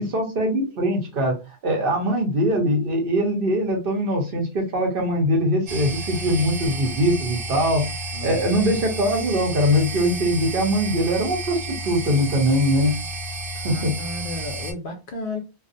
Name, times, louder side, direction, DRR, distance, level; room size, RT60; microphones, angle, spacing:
voice 1, 0.0-1.4 1.6-7.9 8.2-11.6 11.8-13.0 13.6-13.9, equal, 55° right, 0.9 m, -22 dB
sound 1, 5.7-14.7, right 1 dB, 85° right, 1.0 m, -32 dB
voice 2, 8.1-8.8 13.5-15.4, left 2 dB, 60° left, 0.6 m, -34 dB
2.4 x 2.0 x 2.5 m
omnidirectional pair, 1.2 m